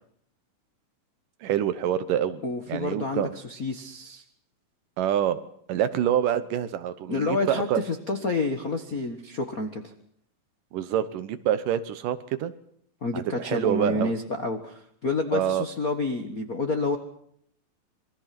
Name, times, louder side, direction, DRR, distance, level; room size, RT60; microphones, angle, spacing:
voice 1, 1.4-2.4 2.7-3.3 5.0-5.4 5.7-7.8 10.7-12.5 13.1-14.1 15.3-15.7, right 10 dB, 70° right, 12 dB, 2.5 m, -26 dB
voice 2, 2.4-4.2 7.1-9.9 13.0-17.0, left 3 dB, 50° left, 3 dB, 1.0 m, -29 dB
26.5 x 23.0 x 6.0 m, 0.67 s
omnidirectional pair, 4.1 m